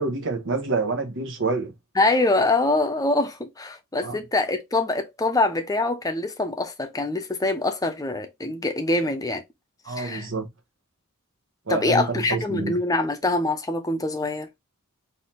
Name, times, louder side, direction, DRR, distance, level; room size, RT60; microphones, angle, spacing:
voice 1, 0.0-1.7 4.0-4.2 9.8-10.5 11.7-12.8, right 3 dB, 60° right, 1.2 m, -27 dB
voice 2, 2.0-9.4 9.9-10.3 11.7-14.5, left 2 dB, 15° left, 0.7 m, -24 dB
4.1 x 2.8 x 4.2 m
head